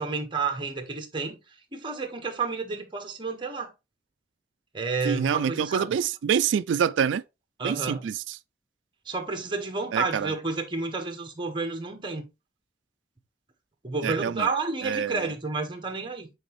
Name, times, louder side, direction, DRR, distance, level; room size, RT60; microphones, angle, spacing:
voice 1, 0.0-1.4 1.7-3.7 4.7-5.9 7.6-8.1 9.0-12.2 13.8-16.3, right 4 dB, 25° right, 1.3 m, -30 dB
voice 2, 5.0-7.2 7.6-8.1 9.9-10.3 14.0-14.5 14.8-15.3, right 7 dB, 90° right, 0.3 m, -26 dB
7.8 x 4.0 x 3.1 m
head